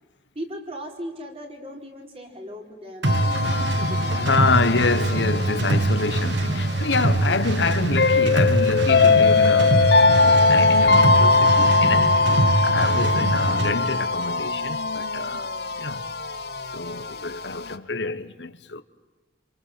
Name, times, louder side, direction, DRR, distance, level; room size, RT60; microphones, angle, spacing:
voice 1, 0.3-4.4 5.4-5.9 7.0-7.4, equal, 35° right, 4.5 m, -38 dB
sound 1, 3.0-17.7, left 3 dB, 60° left, 1.2 m, -21 dB
sound 2, 3.0-13.8, right 2 dB, 85° right, 1.3 m, -24 dB
voice 2, 4.2-9.8 10.5-12.2 12.6-15.5 15.8-16.0 16.7-18.8, left 3 dB, 85° left, 1.3 m, -26 dB
28.5 x 27.0 x 7.5 m
head